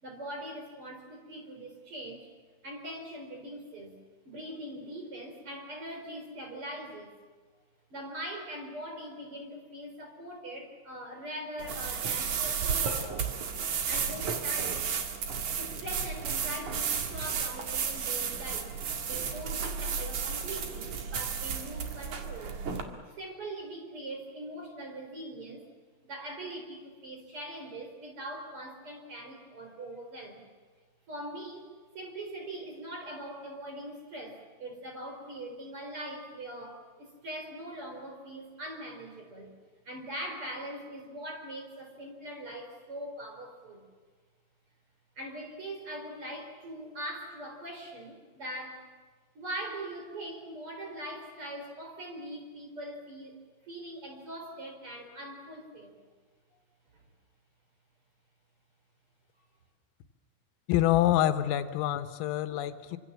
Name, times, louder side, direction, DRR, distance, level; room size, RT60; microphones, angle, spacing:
voice 1, 0.0-2.3 2.6-4.0 4.2-7.2 7.9-13.3 13.9-14.9 15.6-18.7 19.0-22.6 23.0-25.7 26.0-30.4 31.1-31.7 31.9-39.5 39.8-43.9 45.2-48.9 49.3-55.9 56.9-57.0, right 1 dB, 30° right, 3 dB, 4.3 m, -42 dB
sound 1, 11.6-22.8, right 6 dB, 50° right, 2.5 m, -33 dB
voice 2, 60.7-63.0, left 13 dB, 90° left, 9 dB, 3.8 m, -26 dB
27.0 x 25.5 x 7.3 m, 1.5 s
omnidirectional pair, 5.8 m